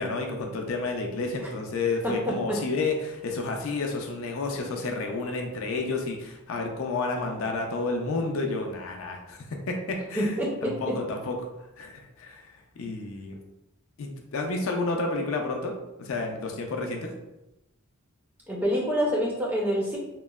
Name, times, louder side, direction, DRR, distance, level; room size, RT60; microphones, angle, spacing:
voice 1, 0.0-10.3 10.6-11.3 11.8-12.4 12.8-13.4 14.0-17.1, left 3 dB, 70° left, 2 dB, 0.4 m, -30 dB
voice 2, 2.0-2.6 10.1-10.9 18.5-20.0, equal, 10° right, -4 dB, 0.4 m, -27 dB
2.9 x 2.0 x 2.3 m, 0.94 s
head